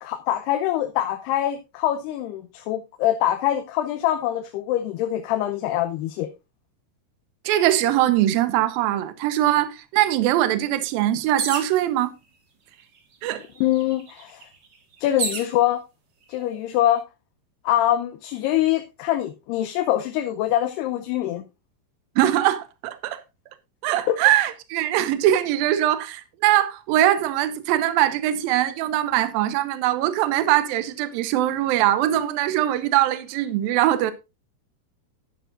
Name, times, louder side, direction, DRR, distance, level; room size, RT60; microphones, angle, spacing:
voice 1, 0.0-6.3 13.6-14.5 15.0-15.8 16.3-17.0 17.6-21.4 24.1-24.2, left 12 dB, 85° left, 2.8 m, -24 dB
voice 2, 7.5-12.1 13.2-13.4 22.2-23.2 23.8-34.1, right 13 dB, 75° right, 2.6 m, -22 dB
sound 1, 11.4-11.8 12.7-12.8 13.1-15.5 16.3-16.8, right 5 dB, 55° right, 1.3 m, -31 dB
11.5 x 10.5 x 2.5 m
omnidirectional pair, 4.6 m